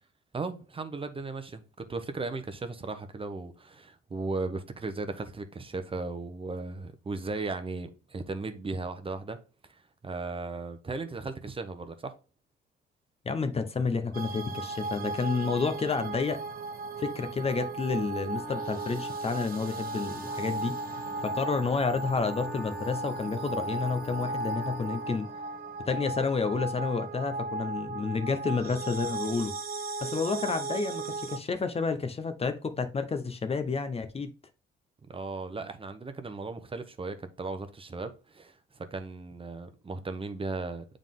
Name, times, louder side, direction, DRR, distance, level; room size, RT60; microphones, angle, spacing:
voice 1, 0.3-9.4 9.7-12.1 35.1-40.9, right 3 dB, 25° right, 0.8 m, -36 dB
voice 2, 13.2-16.4 17.0-20.8 21.2-25.3 25.9-29.5 30.0-34.3, left 4 dB, 30° left, 0.7 m, -30 dB
sound 1, 14.1-31.4, right 3 dB, 45° right, 1.0 m, -36 dB
Wind instrument woodwind instrument, 18.3-25.8, equal, ahead, 1.0 m, -44 dB
7.2 x 3.8 x 3.6 m
cardioid pair, 90°, 20 cm